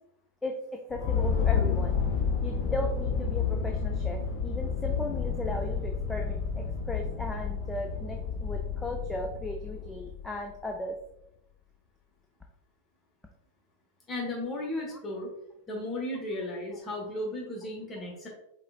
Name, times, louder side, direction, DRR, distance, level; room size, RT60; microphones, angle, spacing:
voice 1, 0.4-2.0 2.4-11.0, left 1 dB, 10° left, 2 dB, 0.5 m, -36 dB
sound 1, 0.9-10.5, left 6 dB, 40° left, 0.7 m, -30 dB
voice 2, 14.1-15.3 15.7-18.3, left 1 dB, 25° left, -1 dB, 1.0 m, -35 dB
4.8 x 3.7 x 2.4 m, 0.82 s
figure-of-eight pair, 90°, 0 cm